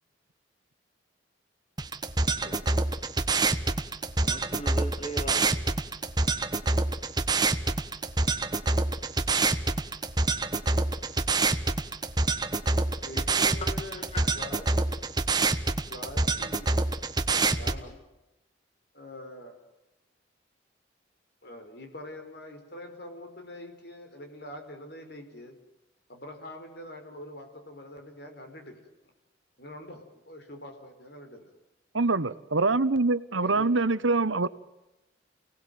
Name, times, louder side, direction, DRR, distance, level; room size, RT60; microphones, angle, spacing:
sound 1, 1.8-17.8, right 3 dB, 20° right, 1.2 m, -27 dB
voice 1, 4.2-5.5 13.1-13.2 13.8-14.2, equal, 30° left, 2.3 m, -39 dB
voice 2, 13.0-14.0 14.3-15.0 15.9-16.9 17.3-18.0 18.9-19.6 21.4-25.6 26.1-28.9 29.6-31.5 33.3-33.8, left 1 dB, 55° left, 5.4 m, -44 dB
voice 3, 31.9-34.5, right 3 dB, 85° right, 1.2 m, -24 dB
29.0 x 19.0 x 9.4 m
head